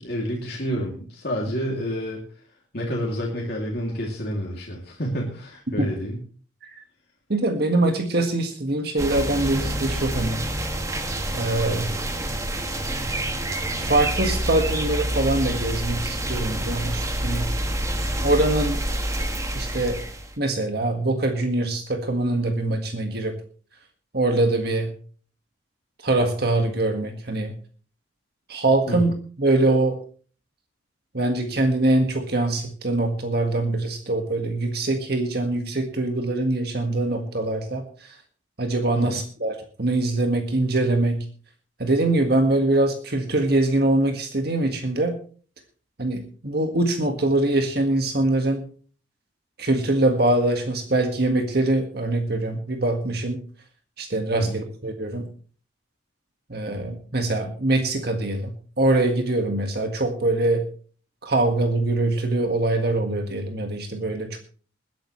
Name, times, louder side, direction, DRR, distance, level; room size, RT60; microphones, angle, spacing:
voice 1, 0.0-2.2 2.7-6.2 28.9-29.1 38.9-39.2 54.4-54.6, equal, 55° left, -2 dB, 2.7 m, -29 dB
voice 2, 7.3-10.4 11.3-11.9 13.8-17.5 18.2-18.8 19.5-20.0 20.4-23.4 24.1-24.9 26.0-27.6 28.5-30.0 31.1-38.2 38.6-41.2 41.8-45.2 46.0-48.7 49.6-53.4 54.0-55.3 56.5-60.6 61.2-64.4, right 2 dB, 55° right, 5 dB, 1.7 m, -23 dB
sound 1, 9.0-20.4, right 1 dB, 15° right, 1.4 m, -27 dB
21.5 x 10.5 x 3.2 m, 0.41 s
head